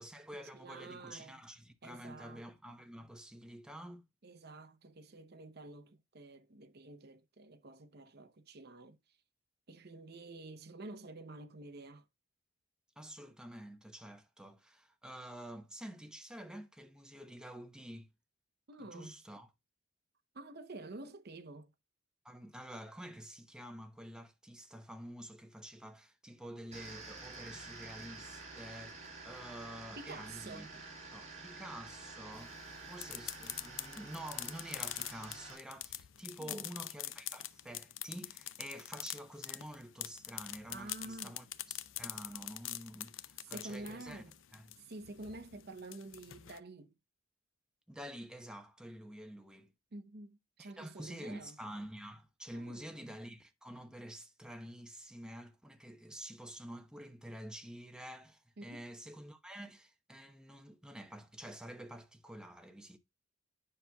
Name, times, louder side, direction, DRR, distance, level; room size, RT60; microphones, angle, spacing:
voice 1, 0.0-4.1 13.0-18.1 18.8-19.5 22.2-30.7 31.1-44.2 44.5-44.8 47.9-49.7 50.6-63.0, equal, 5° right, 0.8 m, -48 dB
voice 2, 0.5-1.4 1.8-2.5 4.2-9.0 9.7-12.0 18.7-19.1 20.3-21.7 30.0-30.8 36.4-36.7 40.7-41.4 43.4-44.3 44.8-46.9 49.9-51.6 52.5-53.1 58.6-58.9, right 2 dB, 50° right, 0.8 m, -49 dB
sound 1, 26.7-35.5, right 3 dB, 35° right, 5.2 m, -49 dB
sound 2, 32.4-46.6, left 14 dB, 65° left, 0.5 m, -44 dB
9.7 x 5.8 x 2.3 m
head